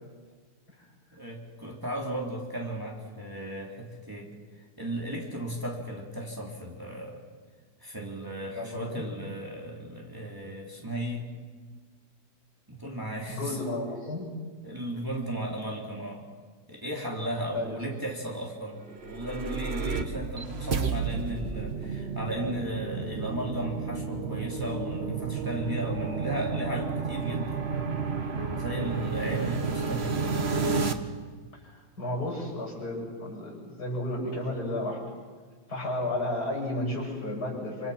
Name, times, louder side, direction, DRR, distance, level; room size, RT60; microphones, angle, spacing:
voice 1, 1.1-7.2 7.8-11.3 12.7-13.6 14.6-16.2 16.7-27.7 28.5-30.4, right 1 dB, 10° right, -3 dB, 3.8 m, -35 dB
voice 2, 8.6-9.0 13.3-14.3 17.5-17.8 31.6-35.0 35.7-37.9, left 1 dB, 70° left, -2 dB, 8.1 m, -33 dB
sound 1, 18.9-30.9, right 5 dB, 40° right, 1.5 m, -31 dB
28.0 x 27.0 x 5.9 m, 1.5 s
omnidirectional pair, 1.7 m